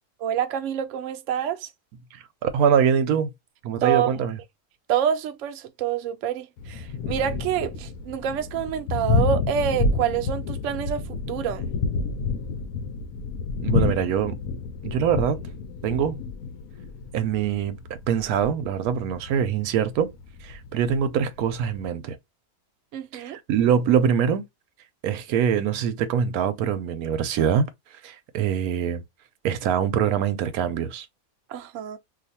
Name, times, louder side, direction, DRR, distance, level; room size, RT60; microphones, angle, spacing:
voice 1, 0.2-1.7 3.8-4.1 4.9-11.7 22.9-23.4 31.5-32.0, right 9 dB, 65° right, 0.9 m, -27 dB
voice 2, 2.1-3.3 3.6-4.4 13.6-14.4 14.8-15.4 15.8-16.2 17.1-20.1 20.4-22.2 23.1-24.4 25.0-27.7 28.0-29.0 29.4-31.1, right 8 dB, 90° right, 1.1 m, -24 dB
Thunder, 6.6-21.9, left 4 dB, 75° left, 1.0 m, -29 dB
2.6 x 2.4 x 4.1 m
omnidirectional pair, 1.5 m